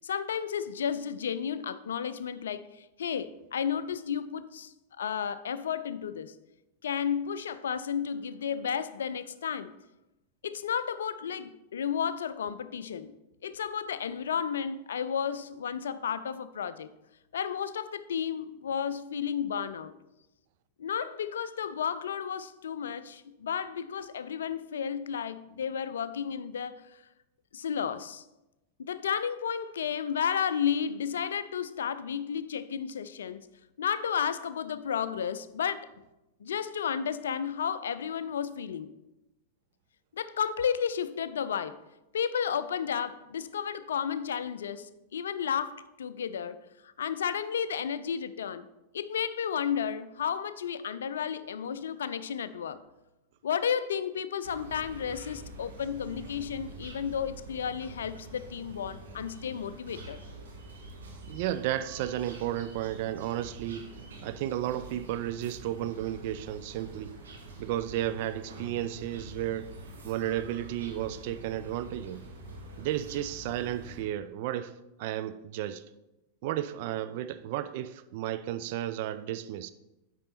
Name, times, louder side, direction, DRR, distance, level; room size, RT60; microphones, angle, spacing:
voice 1, 0.0-6.3 6.8-9.7 10.4-13.1 13.4-16.9 17.3-19.9 20.8-26.8 27.5-28.2 28.8-33.5 33.8-35.9 36.4-38.9 40.1-41.8 42.1-46.6 47.0-48.7 48.9-52.8 53.4-60.2, left 7 dB, 65° left, 0.4 m, -32 dB
sound 1, 54.4-74.0, right 2 dB, 65° right, 1.5 m, -46 dB
voice 2, 61.3-63.9 64.2-67.1 67.6-69.7 70.0-72.2 72.8-74.7 75.0-75.8 76.4-79.7, right 12 dB, 50° right, 0.4 m, -33 dB
8.6 x 5.1 x 4.2 m
figure-of-eight pair, 90°, 0 cm